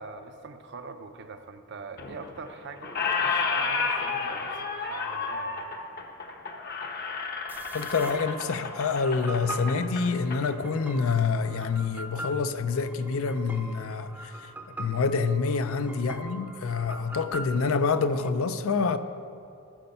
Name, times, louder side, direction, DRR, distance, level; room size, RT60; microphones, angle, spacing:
voice 1, 0.0-5.6, right 4 dB, 50° right, 0.6 m, -43 dB
Squeak, 2.0-2.5 2.8-10.4, left 4 dB, 45° left, 0.8 m, -31 dB
sound 1, 7.5-18.3, right 2 dB, 10° right, 0.6 m, -42 dB
voice 2, 7.7-14.3 14.8-19.0, left 4 dB, 70° left, 0.5 m, -27 dB
14.0 x 5.5 x 5.5 m
head